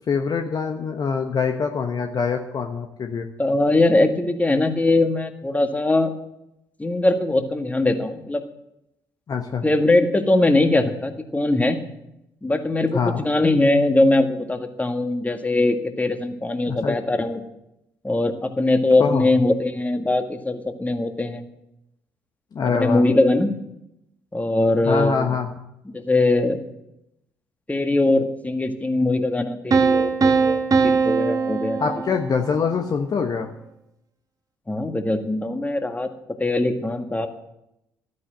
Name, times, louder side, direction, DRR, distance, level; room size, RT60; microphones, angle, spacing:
voice 1, 0.1-3.3 9.3-9.6 12.9-13.2 16.7-17.0 19.0-19.3 22.5-23.0 24.8-25.5 31.8-33.5, left 5 dB, 40° left, 5 dB, 1.1 m, -24 dB
voice 2, 3.4-6.1 6.8-8.4 9.6-11.8 12.4-17.4 18.0-21.4 22.7-23.5 24.3-25.3 25.9-26.6 27.7-31.8 34.7-36.1 36.4-37.3, left 2 dB, 15° left, 6 dB, 1.9 m, -21 dB
Piano, 29.7-32.6, right 5 dB, 35° right, 1.7 m, -20 dB
13.0 x 9.5 x 7.6 m, 0.83 s
figure-of-eight pair, 45°, 10 cm